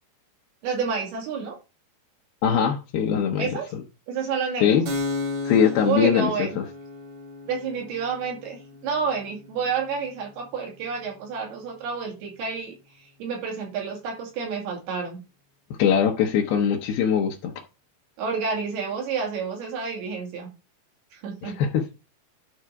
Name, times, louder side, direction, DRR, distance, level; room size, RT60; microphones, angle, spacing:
voice 1, 0.6-1.6 3.4-3.7 4.1-4.8 5.8-6.6 7.5-15.2 18.2-20.5 21.1-21.6, right 5 dB, 75° right, 4.4 m, -29 dB
voice 2, 2.4-3.8 4.6-4.9 5.5-6.6 15.8-17.5 21.4-21.8, left 8 dB, 75° left, 2.7 m, -22 dB
Keyboard (musical), 4.9-12.2, left 3 dB, 55° right, 2.2 m, -36 dB
11.0 x 4.0 x 4.7 m
omnidirectional pair, 4.7 m